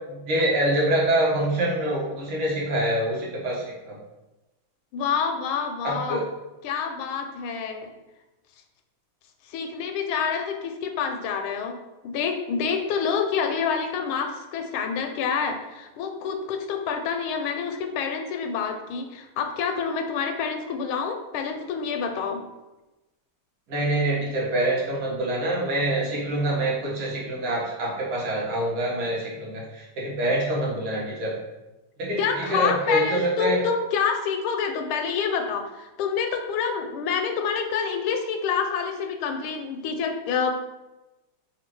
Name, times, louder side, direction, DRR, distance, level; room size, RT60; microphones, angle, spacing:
voice 1, 0.1-4.0 5.8-6.2 23.7-31.4 32.0-33.6, right 1 dB, 75° right, -5 dB, 2.1 m, -25 dB
voice 2, 4.9-6.2 6.6-7.9 9.4-11.8 12.0-22.4 32.2-40.5, left 6 dB, 80° left, 5 dB, 1.4 m, -27 dB
4.3 x 2.6 x 4.5 m, 1.0 s
omnidirectional pair, 2.4 m